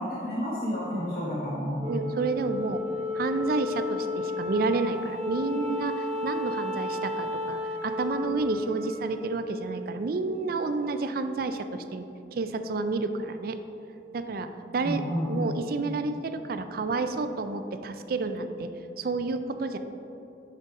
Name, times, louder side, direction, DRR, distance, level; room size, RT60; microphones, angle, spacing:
voice 1, 0.0-1.9 14.7-15.6, equal, 60° left, -8 dB, 1.3 m, -30 dB
Wind instrument woodwind instrument, 1.8-10.4, left 2 dB, 40° right, 0.8 m, -33 dB
voice 2, 1.9-2.8 3.1-12.1 12.3-13.6 14.1-18.7 19.0-19.8, right 3 dB, 55° right, 9 dB, 0.4 m, -30 dB
6.6 x 5.1 x 4.7 m, 2.8 s
head